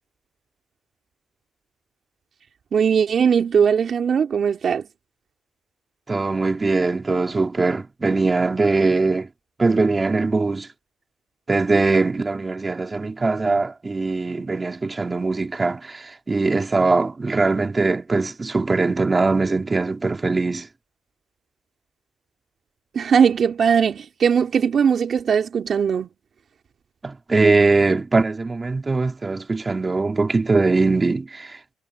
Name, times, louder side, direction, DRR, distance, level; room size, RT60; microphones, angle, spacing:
voice 1, 2.7-4.8 22.9-26.1, right 7 dB, 50° right, 3.9 m, -19 dB
voice 2, 6.1-9.3 9.6-10.7 11.5-20.7 27.0-31.7, right 3 dB, 25° right, 4.2 m, -21 dB
cardioid pair, 90°, 0 cm